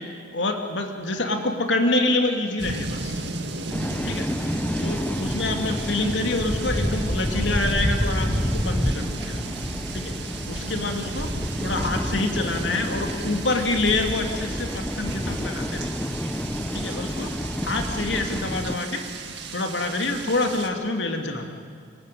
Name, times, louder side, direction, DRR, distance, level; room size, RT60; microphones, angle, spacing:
voice 1, 0.3-3.2 4.0-4.3 4.8-9.5 9.9-10.1 10.5-11.3 11.6-16.1 16.7-19.1 19.5-21.5, left 2 dB, 70° left, 4 dB, 2.5 m, -26 dB
sound 1, 2.6-20.7, right 3 dB, 60° right, 2.1 m, -36 dB
sound 2, 3.7-18.8, equal, 10° left, 0.7 m, -29 dB
sound 3, 4.3-13.5, right 2 dB, 20° right, 7.7 m, -45 dB
24.0 x 21.0 x 9.3 m, 2.1 s
head